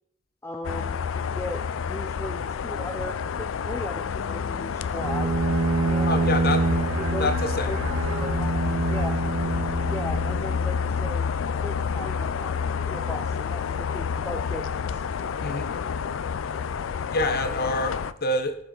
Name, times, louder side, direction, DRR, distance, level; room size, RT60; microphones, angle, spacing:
voice 1, 0.4-5.3 5.8-6.3 6.9-9.3 9.8-11.4 11.6-15.0, left 1 dB, 15° left, 5 dB, 0.5 m, -37 dB
sound 1, 0.6-18.1, left 6 dB, 75° left, 0.4 m, -29 dB
Bowed string instrument, 5.0-10.8, right 3 dB, 90° right, 0.6 m, -26 dB
voice 2, 6.1-6.6 7.2-7.7 15.4-15.7 17.1-18.6, left 2 dB, 50° left, 8 dB, 0.9 m, -26 dB
14.0 x 5.4 x 3.9 m, 0.74 s
head